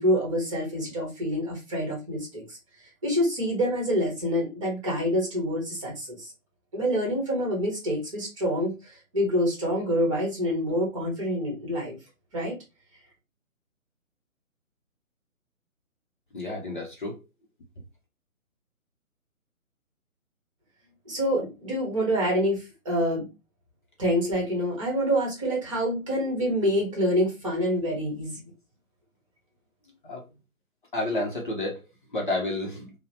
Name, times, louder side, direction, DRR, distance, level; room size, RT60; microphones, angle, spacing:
voice 1, 0.0-2.6 3.0-6.3 6.7-12.0 12.3-12.6 21.1-23.3 24.0-28.4, equal, 25° right, 0.9 m, -26 dB
voice 2, 16.3-17.2 30.1-30.2 30.9-31.8 32.1-32.9, left 2 dB, 40° left, 0.6 m, -30 dB
2.8 x 2.0 x 2.7 m
figure-of-eight pair, 150°, 41 cm